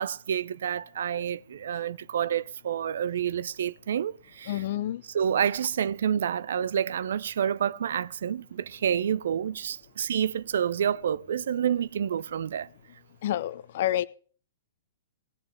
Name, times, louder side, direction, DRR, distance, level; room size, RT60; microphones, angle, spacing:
voice 1, 0.0-4.6 5.1-12.7, right 8 dB, 60° right, 0.5 m, -28 dB
voice 2, 4.5-5.0 13.2-14.1, left 12 dB, 50° left, 0.6 m, -28 dB
18.5 x 7.8 x 3.4 m
figure-of-eight pair, 110°, 0 cm